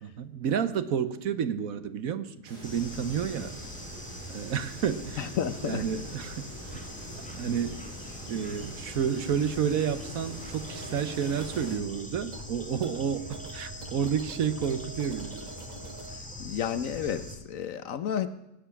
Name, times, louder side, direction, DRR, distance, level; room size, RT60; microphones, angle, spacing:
voice 1, 0.0-3.5 4.3-5.3 5.6-6.5 6.7-6.9 7.3-7.8 8.3-15.5, right 8 dB, 65° right, 1.2 m, -30 dB
sound 1, 2.4-11.8, right 1 dB, 90° right, 4.5 m, -45 dB
Bird / Insect, 2.6-17.4, left 1 dB, 5° left, 1.7 m, -43 dB
voice 2, 5.2-5.8 16.4-18.3, left 9 dB, 60° left, 1.1 m, -31 dB
sound 2, 10.7-16.2, right 3 dB, 35° right, 0.8 m, -46 dB
18.0 x 7.8 x 8.4 m
omnidirectional pair, 1.7 m